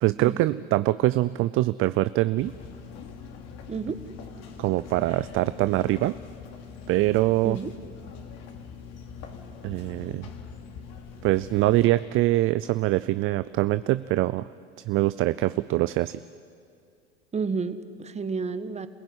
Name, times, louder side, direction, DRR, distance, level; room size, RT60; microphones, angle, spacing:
voice 1, 0.0-2.5 4.6-6.2 6.9-7.6 9.6-10.3 11.2-14.5 14.9-16.2, right 16 dB, 40° right, 15 dB, 0.6 m, -23 dB
sound 1, 2.4-11.9, left 6 dB, 50° left, 3.1 m, -43 dB
voice 2, 3.7-4.0 7.4-7.7 17.3-18.9, right 5 dB, 20° right, 11 dB, 1.4 m, -30 dB
27.0 x 16.0 x 9.8 m, 2.3 s
hypercardioid pair, 90°, 33 cm